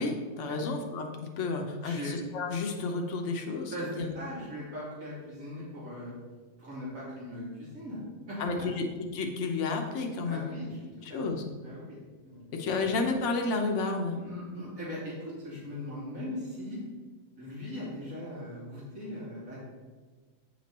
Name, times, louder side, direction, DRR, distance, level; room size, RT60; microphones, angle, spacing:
voice 1, 0.0-4.1 8.4-10.5 11.0-11.4 12.5-14.2, left 3 dB, 65° left, 3 dB, 1.2 m, -31 dB
voice 2, 3.7-6.2 6.6-8.0 8.3-8.5 10.3-11.2 11.6-12.0 12.2-12.7 14.2-16.8 17.4-19.6, left 1 dB, 90° right, -8 dB, 3.4 m, -40 dB
8.4 x 6.0 x 4.2 m, 1.4 s
omnidirectional pair, 1.4 m